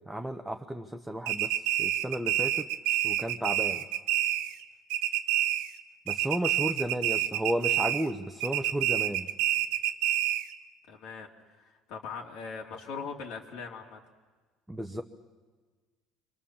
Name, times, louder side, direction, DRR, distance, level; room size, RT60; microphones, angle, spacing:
voice 1, 0.1-3.8 6.1-9.3 14.7-15.0, right 1 dB, 5° right, 4 dB, 0.9 m, -33 dB
sound 1, 1.3-4.6 4.9-5.8 6.1-8.1 8.4-10.5, right 12 dB, 85° right, 1.0 m, -28 dB
voice 2, 10.9-11.3 11.6-14.0, left 5 dB, 65° left, 0 dB, 2.6 m, -40 dB
28.0 x 24.0 x 7.3 m, 1.4 s
cardioid pair, 155°, 0 cm